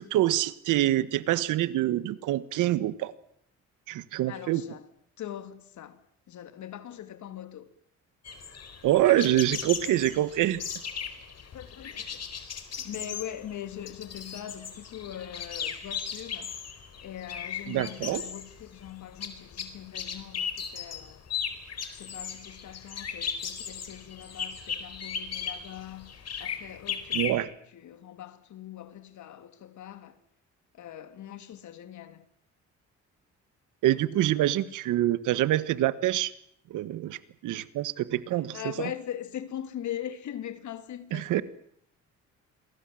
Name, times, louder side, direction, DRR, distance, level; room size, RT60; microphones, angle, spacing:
voice 1, 0.0-3.1 3.9-4.6 8.8-10.6 17.7-18.2 27.1-27.5 33.8-36.3 36.7-38.9 41.1-41.4, right 14 dB, 90° right, 1.4 m, -26 dB
voice 2, 4.3-4.9 5.2-6.0 6.3-7.7 9.1-10.1 11.4-16.5 17.0-21.3 21.9-26.1 26.4-30.2 30.7-32.3 34.6-34.7 38.3-41.4, left 11 dB, 70° left, 2.7 m, -41 dB
sound 1, 8.2-27.4, left 7 dB, 55° left, 4.3 m, -37 dB
28.5 x 23.0 x 7.7 m
cardioid pair, 90°, 30 cm